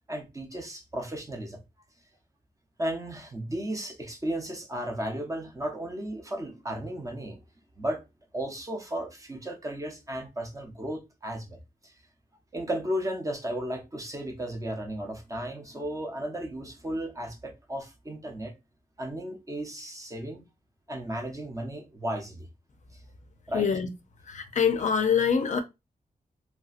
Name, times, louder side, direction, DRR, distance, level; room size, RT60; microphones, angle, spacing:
voice 1, 0.1-1.6 2.8-7.4 7.8-8.0 8.3-11.9 12.5-18.5 19.0-20.4 20.9-22.5 23.5-23.7, right 1 dB, 20° right, 0.6 m, -34 dB
voice 2, 23.5-23.9 24.2-25.6, left 7 dB, 50° left, 0.4 m, -25 dB
3.2 x 2.7 x 2.4 m
wide cardioid pair, 165°, 16 cm